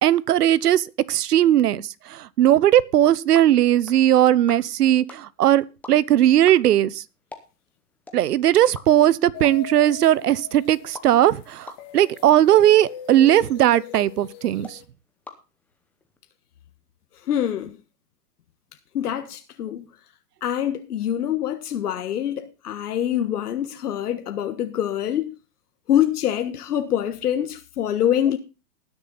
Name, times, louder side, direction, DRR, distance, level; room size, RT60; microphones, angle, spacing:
voice 1, 0.0-7.0 8.1-14.8, right 12 dB, 70° right, 1.0 m, -18 dB
sound 1, 2.9-16.2, left 3 dB, 5° left, 0.8 m, -48 dB
sound 2, 9.3-14.8, left 9 dB, 30° left, 2.3 m, -40 dB
voice 2, 17.3-17.8 18.9-19.8 20.4-25.3 25.9-28.4, left 10 dB, 70° left, 1.5 m, -25 dB
19.5 x 7.0 x 4.0 m
hypercardioid pair, 150°, 48 cm